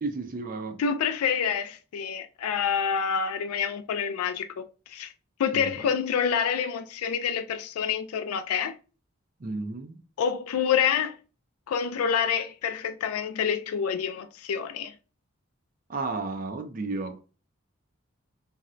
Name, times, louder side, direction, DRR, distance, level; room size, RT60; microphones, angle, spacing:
voice 1, 0.0-0.8 5.5-5.9 9.4-10.0 15.9-17.3, right 3 dB, 40° right, 0.4 m, -33 dB
voice 2, 0.8-5.1 5.4-8.7 10.2-11.2 11.7-14.9, left 7 dB, 80° left, 0.3 m, -27 dB
4.1 x 2.1 x 2.4 m
head